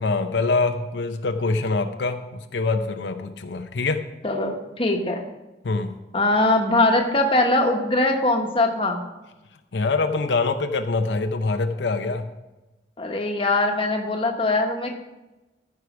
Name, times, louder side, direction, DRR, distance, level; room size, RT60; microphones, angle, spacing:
voice 1, 0.0-4.1 5.6-5.9 9.7-12.3, left 3 dB, 90° left, 7 dB, 0.6 m, -24 dB
voice 2, 4.2-5.2 6.1-9.0 13.0-14.9, left 2 dB, 30° left, 3 dB, 1.1 m, -21 dB
14.5 x 4.8 x 6.0 m, 1.1 s
head